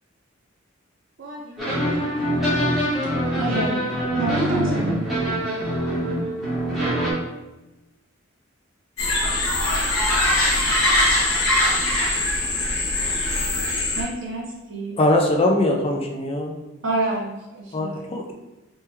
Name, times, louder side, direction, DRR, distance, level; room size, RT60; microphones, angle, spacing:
voice 1, 1.2-3.4, right 1 dB, 55° right, -4 dB, 0.5 m, -43 dB
sound 1, 1.6-7.1, equal, ahead, 1.4 m, -24 dB
voice 2, 3.3-3.8 4.2-5.1 13.9-15.0 16.8-18.0, right 2 dB, 70° right, -4 dB, 1.1 m, -28 dB
sound 2, 9.0-14.0, left 1 dB, 85° left, 1.0 m, -21 dB
voice 3, 15.0-16.5 17.7-18.3, left 1 dB, 30° left, 1 dB, 0.4 m, -21 dB
3.4 x 3.1 x 3.2 m, 1.0 s
head